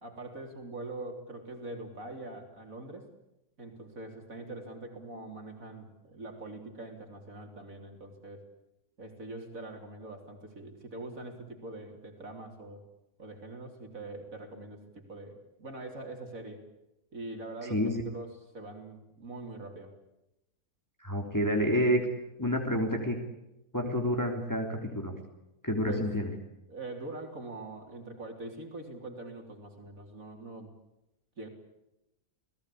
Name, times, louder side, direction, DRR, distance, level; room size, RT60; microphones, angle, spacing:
voice 1, 0.0-3.1 3.6-8.4 9.0-12.8 13.2-16.6 17.1-19.9 25.9-26.1 26.7-30.7 31.4-31.5, right 2 dB, 55° right, 3 dB, 4.0 m, -43 dB
voice 2, 17.7-18.0 21.0-22.0 22.4-23.2 23.7-25.1 25.6-26.3, equal, 10° left, 2 dB, 3.3 m, -28 dB
29.0 x 18.5 x 8.5 m, 0.90 s
omnidirectional pair, 1.8 m